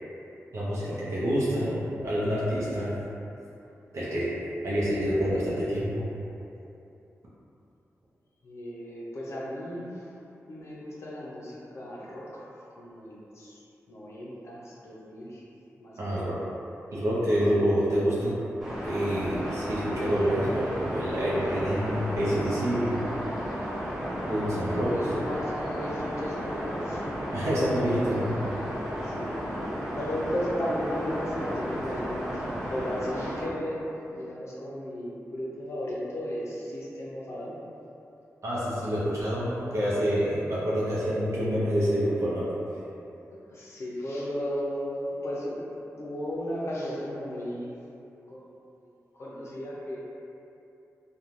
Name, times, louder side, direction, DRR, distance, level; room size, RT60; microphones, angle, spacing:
voice 1, 0.5-2.9 3.9-4.4 4.6-6.1 16.0-16.4 16.9-18.4 18.8-22.9 24.3-25.0 27.3-28.4 38.4-42.4, equal, 65° right, -9 dB, 0.6 m, -27 dB
voice 2, 8.4-10.0 10.5-12.3 12.8-13.6 13.9-15.4 15.8-16.3 17.6-17.7 24.4-27.2 29.0-29.5 29.9-33.8 34.1-37.6 43.3-45.6 45.9-47.7 48.3-48.4 49.1-50.0, equal, 55° left, -6 dB, 0.5 m, -35 dB
sound 1, 18.6-33.5, equal, 5° right, 0.5 m, -33 dB
3.0 x 2.2 x 2.5 m, 2.8 s
wide cardioid pair, 100°, 5 cm